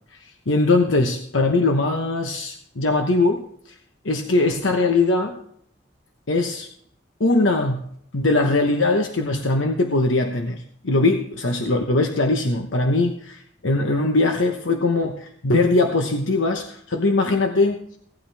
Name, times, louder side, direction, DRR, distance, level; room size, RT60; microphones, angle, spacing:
voice 1, 0.2-3.7 4.0-5.4 6.3-6.7 7.2-7.8 8.1-17.8, left 2 dB, 90° left, 4 dB, 1.1 m, -21 dB
17.0 x 11.5 x 3.5 m, 0.66 s
head